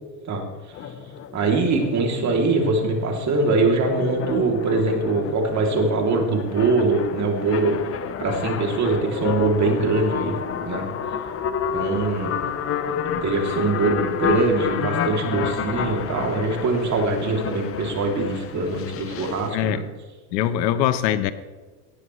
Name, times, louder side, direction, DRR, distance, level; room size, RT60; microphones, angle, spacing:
sound 1, 0.7-19.5, left 8 dB, 30° left, 0.8 m, -30 dB
voice 1, 1.3-7.8 8.2-10.4 10.6-10.9 11.7-12.4 13.2-19.8, right 3 dB, 35° right, 1 dB, 3.0 m, -22 dB
voice 2, 20.3-21.3, left 11 dB, 85° left, 12 dB, 1.1 m, -22 dB
19.0 x 9.7 x 3.2 m, 1.3 s
supercardioid pair, 125°, 49 cm